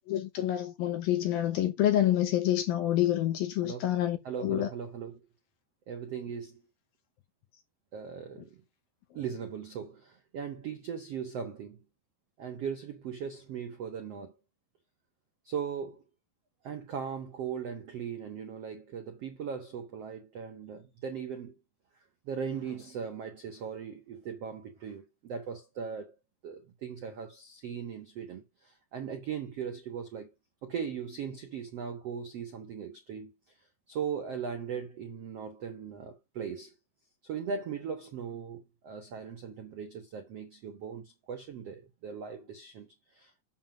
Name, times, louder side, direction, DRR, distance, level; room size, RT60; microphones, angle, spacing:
voice 1, 0.1-4.7, left 12 dB, 75° left, 2.3 m, -27 dB
voice 2, 4.2-5.3 5.9-6.7 7.9-8.6 9.1-11.8 12.4-14.3 15.4-16.0 16.6-21.5 22.2-26.1 26.4-30.3 30.6-33.3 33.9-36.7 37.2-42.9 43.1-43.3, right 7 dB, 85° right, 1.3 m, -39 dB
7.5 x 7.4 x 5.2 m
omnidirectional pair, 5.1 m